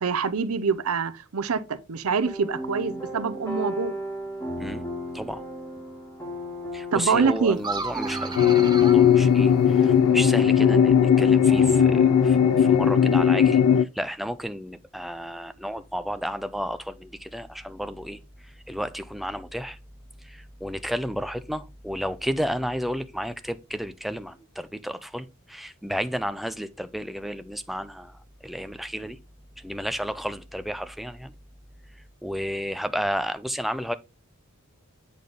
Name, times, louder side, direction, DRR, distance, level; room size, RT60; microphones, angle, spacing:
voice 1, 0.0-3.9 6.9-7.6, right 5 dB, 75° right, 0.6 m, -25 dB
sound 1, 2.2-13.2, right 1 dB, 15° left, 2.2 m, -35 dB
voice 2, 6.7-19.8 20.2-29.2 29.6-31.3 32.2-33.9, equal, ahead, 0.4 m, -32 dB
sound 2, 7.6-10.1, right 4 dB, 20° right, 0.8 m, -35 dB
sound 3, 8.3-13.8, left 8 dB, 85° left, 0.3 m, -18 dB
8.5 x 3.9 x 3.4 m
head